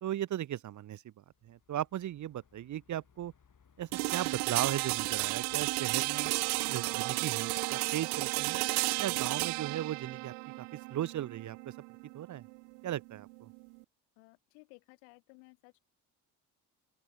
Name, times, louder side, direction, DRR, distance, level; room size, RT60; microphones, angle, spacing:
voice 1, 0.0-3.3 3.8-6.3 6.7-8.6 9.0-11.7 12.1-12.4 12.8-13.5, right 12 dB, 40° right, 0.6 m, -37 dB
sound 1, 1.3-6.7, left 6 dB, 45° left, 6.7 m, -64 dB
sound 2, 3.9-13.8, right 32 dB, 85° right, 0.7 m, -33 dB
voice 2, 14.2-15.8, left 40 dB or more, 85° left, 2.1 m, -58 dB
open air
hypercardioid pair, 55°, 45 cm